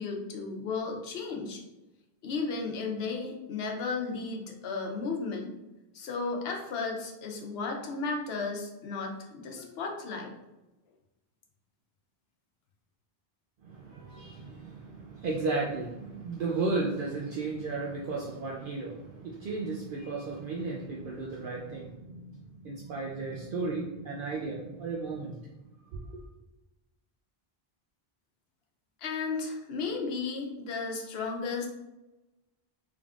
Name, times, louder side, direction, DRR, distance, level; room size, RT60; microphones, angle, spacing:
voice 1, 0.0-1.6 2.2-5.6 5.9-10.3 29.0-31.7, left 4 dB, 80° left, 2 dB, 0.9 m, -34 dB
voice 2, 13.6-25.4 25.9-26.2, right 3 dB, 65° right, -2 dB, 0.7 m, -34 dB
3.5 x 3.5 x 2.4 m, 0.99 s
omnidirectional pair, 1.1 m